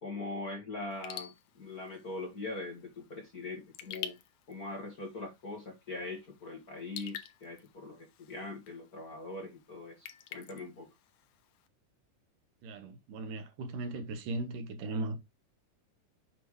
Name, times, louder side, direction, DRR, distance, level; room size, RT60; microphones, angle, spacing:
voice 1, 0.0-4.2 4.5-10.9, left 2 dB, 40° left, 1.5 m, -42 dB
Raindrop / Drip, 0.9-11.7, left 11 dB, 75° left, 2.2 m, -49 dB
voice 2, 12.6-15.2, right 2 dB, 80° right, 2.9 m, -37 dB
7.8 x 5.4 x 3.1 m
omnidirectional pair, 3.7 m